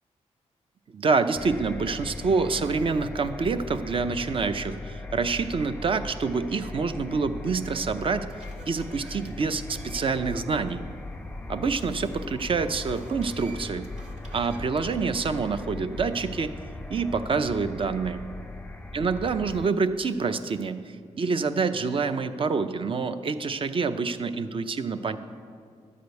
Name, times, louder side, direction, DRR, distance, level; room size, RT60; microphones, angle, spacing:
voice 1, 0.9-8.3 8.7-10.8 11.5-13.9 14.3-16.6 16.9-18.3 18.9-25.2, right 4 dB, 45° right, 10 dB, 0.6 m, -27 dB
sound 1, 1.3-19.7, left 2 dB, 10° left, 0.5 m, -39 dB
sound 2, 7.3-7.4 8.0-10.3 10.7-10.8 12.7-14.8, right 2 dB, 70° right, 1.9 m, -50 dB
12.0 x 5.1 x 8.0 m, 2.1 s
cardioid pair, 80°, 12 cm